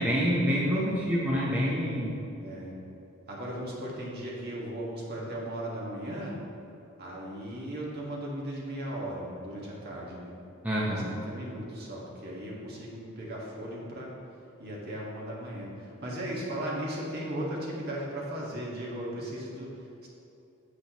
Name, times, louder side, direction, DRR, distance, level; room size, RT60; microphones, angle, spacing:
voice 1, 0.0-2.1 10.6-11.1, equal, 10° right, -6 dB, 1.0 m, -27 dB
voice 2, 2.4-2.8 3.3-6.4 7.0-10.3 10.9-14.1 14.6-20.1, right 1 dB, 50° right, -4 dB, 1.8 m, -37 dB
8.7 x 7.8 x 3.0 m, 2.8 s
head